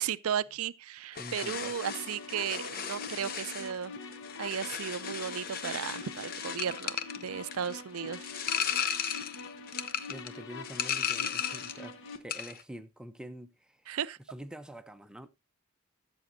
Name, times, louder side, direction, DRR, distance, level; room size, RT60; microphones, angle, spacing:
voice 1, 0.0-4.0 4.4-9.3 13.9-14.2, right 8 dB, 70° right, 0.5 m, -35 dB
sound 1, 1.1-11.9 12.1-12.6, left 8 dB, 40° left, 0.7 m, -36 dB
voice 2, 1.2-1.7 10.1-13.9 14.3-15.3, equal, 5° right, 0.6 m, -46 dB
sound 2, 1.7-12.2, left 4 dB, 55° left, 1.1 m, -45 dB
15.5 x 7.1 x 2.7 m
head